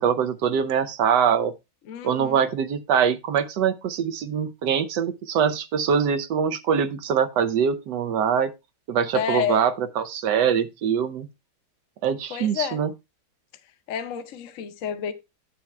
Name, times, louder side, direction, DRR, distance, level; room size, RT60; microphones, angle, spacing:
voice 1, 0.0-1.5 2.0-8.5 8.9-11.3 12.0-12.9, right 7 dB, 80° right, 1.4 m, -23 dB
voice 2, 1.9-2.4 9.1-9.6 12.3-12.8 13.9-15.1, left 8 dB, 60° left, 1.0 m, -29 dB
10.5 x 7.8 x 2.2 m
omnidirectional pair, 1.9 m